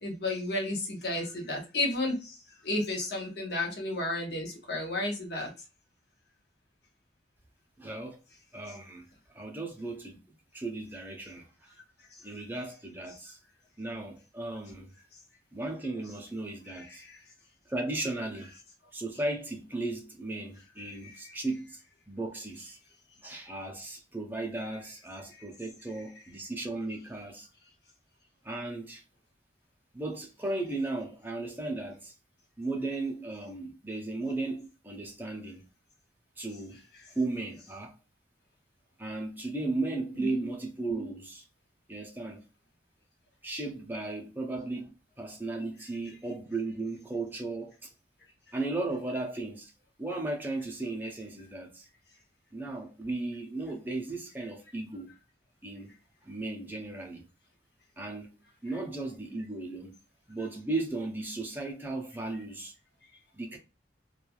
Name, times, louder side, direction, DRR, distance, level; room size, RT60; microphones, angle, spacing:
voice 1, 0.0-5.5 16.8-17.2 21.0-21.1 40.1-40.5, left 2 dB, 60° left, 0.9 m, -33 dB
voice 2, 7.8-8.2 8.5-9.0 9.3-10.2 10.5-11.5 12.2-13.4 13.8-14.9 15.5-17.0 17.7-18.5 18.9-21.8 22.1-22.8 23.2-27.5 28.4-29.0 29.9-32.1 32.6-35.6 36.4-36.8 37.1-37.9 39.0-41.4 41.9-42.4 43.4-47.9 48.5-49.7 50.0-51.9 52.5-55.1 55.6-55.9 56.2-57.2 58.0-58.3 58.6-60.0 60.3-62.7 63.3-63.6, right 2 dB, 10° right, 0.5 m, -35 dB
3.1 x 2.3 x 2.3 m
head